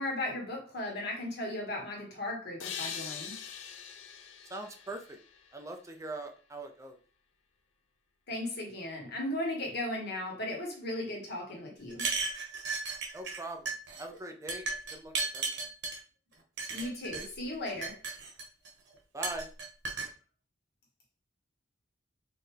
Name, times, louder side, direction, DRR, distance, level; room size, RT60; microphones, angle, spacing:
voice 1, 0.0-3.4 8.3-12.0 14.1-14.2 16.7-18.0, left 1 dB, 55° left, 1.6 m, -36 dB
sound 1, 2.6-6.1, left 7 dB, 75° left, 0.6 m, -43 dB
voice 2, 4.5-5.2 5.5-7.0 13.1-15.5 19.1-19.5, right 2 dB, 15° right, 0.5 m, -42 dB
sound 2, 11.9-13.4 13.7-14.0 14.5-16.0 16.6-17.3 17.7-18.7 19.2-20.1, right 4 dB, 65° right, 1.2 m, -35 dB
4.5 x 3.4 x 3.3 m
head